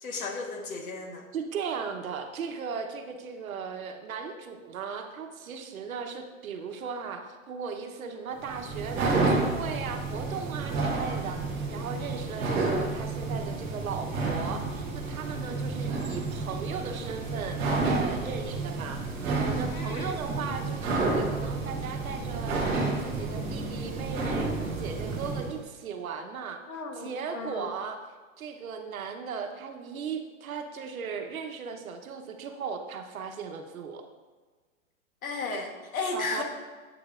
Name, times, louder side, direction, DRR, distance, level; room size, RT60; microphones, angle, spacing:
voice 1, 0.0-1.3 19.7-20.2 26.7-27.7 35.2-36.4, left 3 dB, 90° left, 3 dB, 1.4 m, -34 dB
voice 2, 1.3-17.6 17.9-19.0 19.3-22.6 23.0-26.6 27.0-28.0 28.4-34.0 36.1-36.4, right 6 dB, 80° right, 5 dB, 1.0 m, -37 dB
sound 1, 8.4-25.6, right 3 dB, 15° right, 0.9 m, -30 dB
8.5 x 6.9 x 2.5 m, 1.4 s
hypercardioid pair, 170°, 41 cm